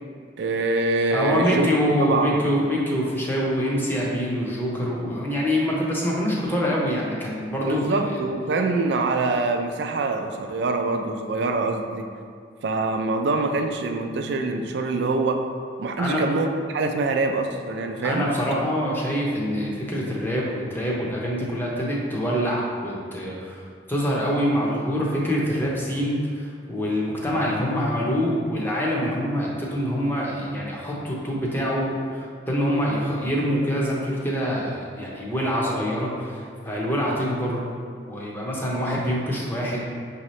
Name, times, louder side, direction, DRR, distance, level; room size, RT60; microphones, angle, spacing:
voice 1, 0.4-2.3 7.7-12.1 12.6-15.4 15.8-18.3, right 3 dB, 60° right, 5 dB, 0.4 m, -24 dB
voice 2, 1.1-8.2 16.0-16.3 18.0-23.6 23.9-37.6 38.1-39.9, equal, 10° left, -4 dB, 0.6 m, -25 dB
5.9 x 2.8 x 3.1 m, 2.2 s
head